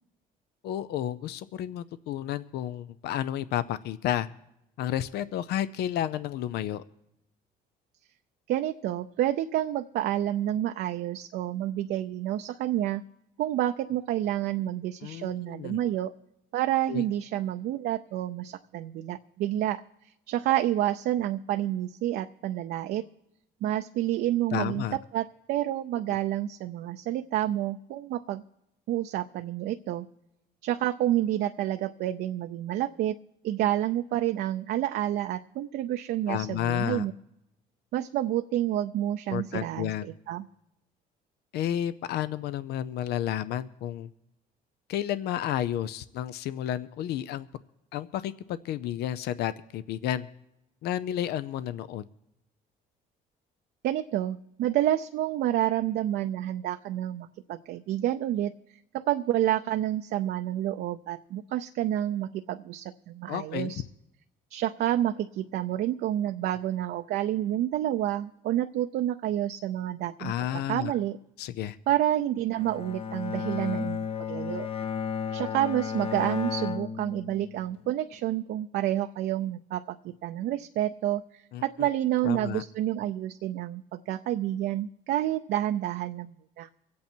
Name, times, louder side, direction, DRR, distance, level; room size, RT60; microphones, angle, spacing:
voice 1, 0.6-4.3 4.8-6.8 15.0-15.8 16.9-17.0 24.5-25.0 36.3-37.1 39.3-40.1 41.5-44.1 44.9-47.5 47.9-50.3 50.8-52.1 63.3-63.8 70.2-70.9 71.4-71.8 81.5-81.9 82.2-82.6, left 11 dB, 75° left, 15 dB, 0.5 m, -31 dB
voice 2, 8.5-13.0 13.4-16.1 16.5-19.8 20.3-23.0 23.6-24.8 25.1-28.4 28.9-30.1 30.6-33.1 33.4-37.1 37.9-40.5 53.8-58.5 58.9-63.8 64.5-71.2 71.9-74.7 75.3-86.7, right 13 dB, 70° right, 7 dB, 0.5 m, -29 dB
Bowed string instrument, 72.6-77.8, left 6 dB, 35° left, 0.7 m, -33 dB
24.0 x 8.5 x 4.5 m, 0.86 s
cardioid pair, 110°, 17 cm